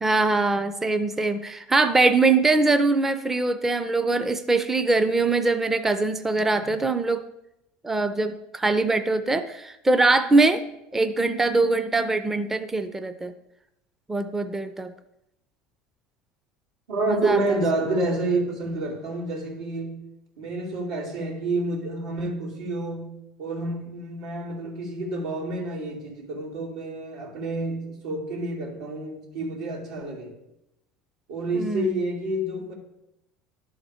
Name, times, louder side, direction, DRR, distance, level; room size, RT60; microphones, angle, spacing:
voice 1, 0.0-7.2 7.8-10.6 10.9-13.3 14.1-14.9 17.0-17.4 31.6-31.9, right 3 dB, 10° right, 10 dB, 0.4 m, -22 dB
voice 2, 16.9-19.9 20.4-23.1 23.4-30.3 31.3-32.7, right 2 dB, 90° right, -4 dB, 2.7 m, -29 dB
11.0 x 3.9 x 4.9 m, 0.85 s
supercardioid pair, 115°, 3 cm